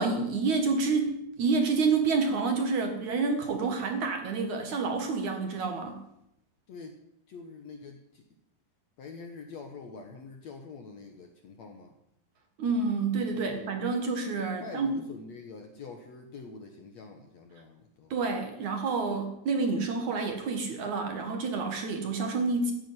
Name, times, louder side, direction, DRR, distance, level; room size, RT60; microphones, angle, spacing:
voice 1, 0.0-6.0 12.6-14.9 18.1-22.7, right 4 dB, 55° right, 5 dB, 2.7 m, -28 dB
voice 2, 7.3-8.2 9.0-11.9 13.3-13.8 14.6-18.1, left 4 dB, 60° left, 4 dB, 2.1 m, -45 dB
15.0 x 8.7 x 9.7 m, 0.79 s
omnidirectional pair, 4.5 m